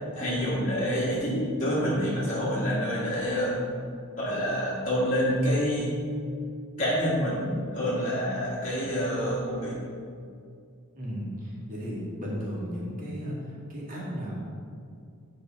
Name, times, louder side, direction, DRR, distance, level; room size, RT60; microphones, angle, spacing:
voice 1, 0.1-3.6 4.2-6.0 6.8-9.8, equal, 35° left, -10 dB, 1.8 m, -27 dB
voice 2, 10.9-14.3, equal, 40° right, -5 dB, 2.1 m, -35 dB
9.4 x 5.1 x 4.2 m, 2.3 s
head